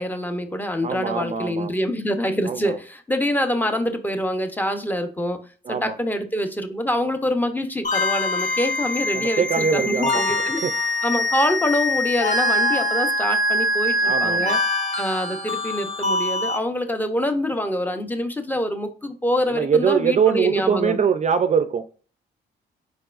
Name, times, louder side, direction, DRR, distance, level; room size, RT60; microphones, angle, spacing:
voice 1, 0.0-5.4 5.7-10.6 11.0-14.6 15.0-21.0, left 1 dB, 10° left, 0.8 m, -25 dB
voice 2, 0.8-1.7 2.5-2.7 5.7-6.0 9.1-10.7 14.0-14.6 19.5-22.0, right 7 dB, 35° right, 0.4 m, -23 dB
sound 1, 7.8-16.6, left 1 dB, 40° left, 1.2 m, -23 dB
4.6 x 4.5 x 2.4 m
cardioid pair, 90°, 20 cm